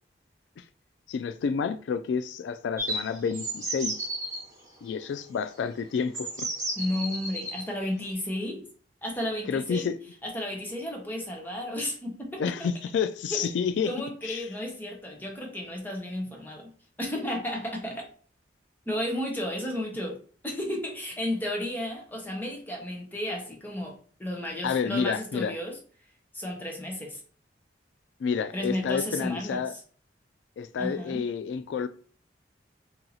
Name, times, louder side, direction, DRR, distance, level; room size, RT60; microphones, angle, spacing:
voice 1, 1.1-4.1 4.8-6.5 9.5-10.0 12.4-13.9 14.2-14.5 24.6-25.5 28.2-29.7 30.6-31.9, left 6 dB, 90° left, 0.3 m, -29 dB
sound 1, 2.8-4.4 5.5-5.6 6.1-7.6, right 1 dB, 15° right, 1.3 m, -33 dB
voice 2, 6.8-8.7 9.0-9.9 10.2-12.6 13.3-13.5 13.8-16.7 17.0-18.1 18.9-25.8 26.3-27.2 28.5-29.6 30.8-31.2, left 1 dB, 10° left, 0.9 m, -33 dB
2.8 x 2.8 x 3.9 m
head